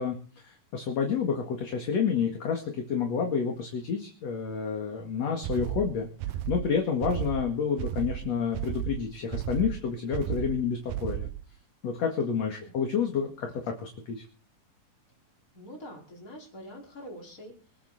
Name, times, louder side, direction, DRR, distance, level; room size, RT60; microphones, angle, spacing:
voice 1, 0.0-6.1 6.5-11.3 11.8-14.2, left 6 dB, 50° left, 2 dB, 3.0 m, -29 dB
sound 1, 5.4-11.5, right 13 dB, 75° right, 2.5 m, -34 dB
voice 2, 15.5-17.9, equal, 20° left, -1 dB, 5.5 m, -45 dB
25.5 x 8.6 x 4.3 m, 0.39 s
omnidirectional pair, 4.1 m